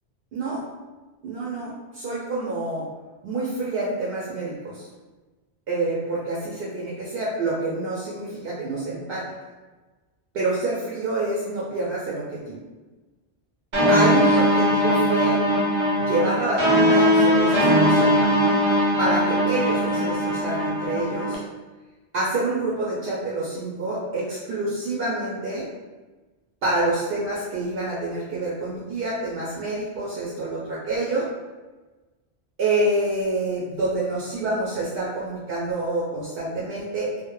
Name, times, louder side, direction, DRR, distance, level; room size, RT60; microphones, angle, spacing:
voice 1, 0.3-0.6 1.2-2.9 3.2-4.9 5.7-9.2 10.3-12.6 13.9-15.4 16.1-18.3 19.0-21.4 22.1-25.7 26.6-31.3 32.6-37.2, right 2 dB, 70° right, -6 dB, 0.7 m, -27 dB
sound 1, 13.7-21.3, equal, 45° right, 0.3 m, -20 dB
2.1 x 2.0 x 2.9 m, 1.2 s
omnidirectional pair, 1.1 m